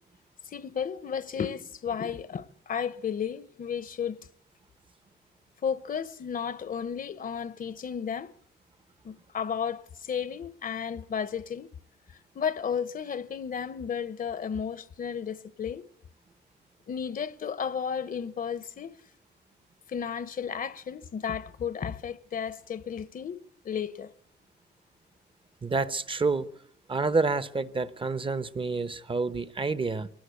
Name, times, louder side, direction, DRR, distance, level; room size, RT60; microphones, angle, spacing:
voice 1, 0.5-4.2 5.6-8.3 9.0-11.7 12.3-15.9 16.9-18.9 19.9-23.4 23.6-24.1, left 7 dB, 50° left, 0.9 m, -33 dB
voice 2, 25.6-26.5 26.9-30.1, right 4 dB, 30° right, 0.9 m, -28 dB
23.5 x 18.0 x 8.2 m
wide cardioid pair, 140°, 18 cm